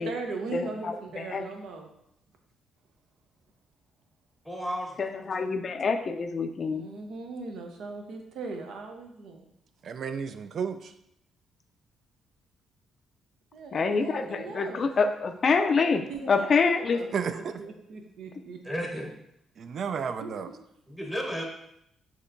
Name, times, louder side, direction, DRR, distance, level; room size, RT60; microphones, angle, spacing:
voice 1, 0.0-1.9 6.7-9.4 13.5-14.9 16.1-17.1 17.3-18.9 19.9-20.3, right 4 dB, 75° right, 3 dB, 0.7 m, -39 dB
voice 2, 0.5-1.4 5.0-6.9 13.7-17.0, left 4 dB, 45° left, 7 dB, 0.3 m, -26 dB
voice 3, 4.4-5.5 18.6-19.1 20.9-21.4, equal, 5° right, -1 dB, 1.0 m, -34 dB
voice 4, 9.8-10.9 17.1-17.6 19.6-20.5, right 6 dB, 60° right, 10 dB, 0.3 m, -32 dB
6.3 x 2.9 x 2.6 m, 0.77 s
cardioid pair, 90°, 0 cm